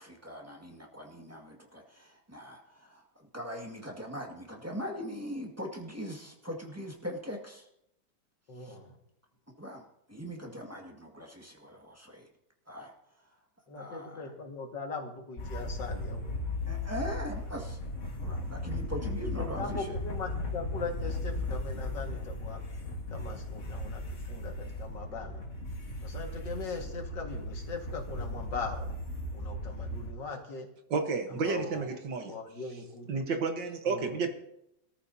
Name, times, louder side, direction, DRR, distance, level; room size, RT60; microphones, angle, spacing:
voice 1, 0.0-7.7 8.6-8.8 9.6-12.3 12.7-13.4 13.8-14.3 16.7-17.8 18.2-20.0, equal, 10° right, 0 dB, 1.8 m, -41 dB
voice 2, 8.5-9.0 13.7-16.4 19.6-22.6 23.1-25.4 26.0-29.0 29.3-30.7 31.4-32.0 32.3-33.2 33.9-34.1, left 4 dB, 70° left, 2 dB, 2.5 m, -40 dB
sound 1, 15.4-30.1, left 1 dB, 40° left, 2.0 m, -36 dB
voice 3, 30.9-32.3 33.1-34.3, right 4 dB, 75° right, 5 dB, 2.0 m, -31 dB
22.0 x 14.0 x 2.8 m, 0.80 s
omnidirectional pair, 2.0 m